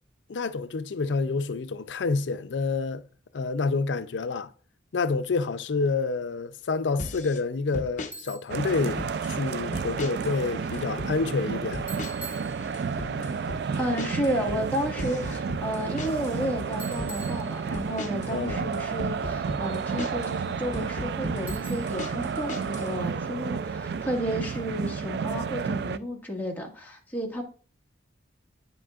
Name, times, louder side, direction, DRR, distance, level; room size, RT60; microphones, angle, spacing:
voice 1, 0.3-3.0 3.3-4.5 4.9-11.8 13.0-13.4 18.3-18.7, left 4 dB, 85° left, 0.5 m, -28 dB
sound 1, 7.0-7.4 7.7-8.1 8.7-9.4 9.7-10.3 10.6-11.1 11.7-12.3 12.6-16.4 16.7-17.2 17.7-20.3 20.7-22.9, left 2 dB, 45° left, 0.8 m, -37 dB
Bicycle, 8.1-8.6 11.9-13.1 16.8-18.0 21.5-22.1, right 2 dB, 10° right, 1.4 m, -44 dB
sound 2, 8.5-26.0, right 6 dB, 60° right, 0.3 m, -31 dB
voice 2, 13.8-27.4, equal, 10° left, 1.7 m, -32 dB
9.2 x 7.6 x 2.4 m
head